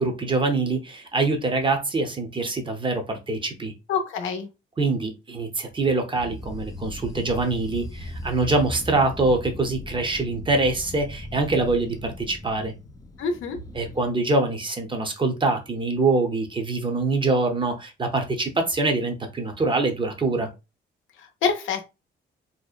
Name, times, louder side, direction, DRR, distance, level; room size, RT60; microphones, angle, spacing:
voice 1, 0.0-3.7 4.8-12.7 13.7-20.5, right 3 dB, 25° right, 0.6 m, -24 dB
voice 2, 3.9-4.5 13.2-13.6 21.2-21.9, left 5 dB, 80° left, 0.6 m, -26 dB
sound 1, 6.1-14.1, left 1 dB, 20° left, 0.3 m, -38 dB
2.7 x 2.0 x 2.3 m
cardioid pair, 90°, 20 cm